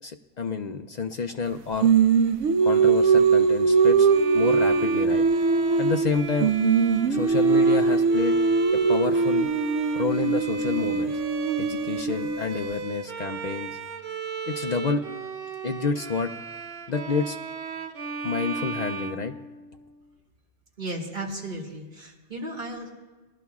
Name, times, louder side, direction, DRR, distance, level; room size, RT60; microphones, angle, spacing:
voice 1, 0.0-1.9 2.6-4.1 4.3-5.2 5.8-6.5 7.1-8.4 8.7-9.5 9.9-11.2 11.6-13.8 14.5-15.0 15.6-16.3 16.9-17.4 18.2-19.3, left 5 dB, 65° left, 6 dB, 0.4 m, -29 dB
Singing, 1.8-6.1 6.4-12.4, right 5 dB, 90° right, 0.9 m, -21 dB
Bowed string instrument, 4.1-20.0, right 5 dB, 60° right, 0.8 m, -36 dB
voice 2, 20.8-22.9, right 1 dB, 45° right, -2 dB, 2.1 m, -35 dB
20.0 x 12.0 x 2.3 m, 1.2 s
omnidirectional pair, 1.2 m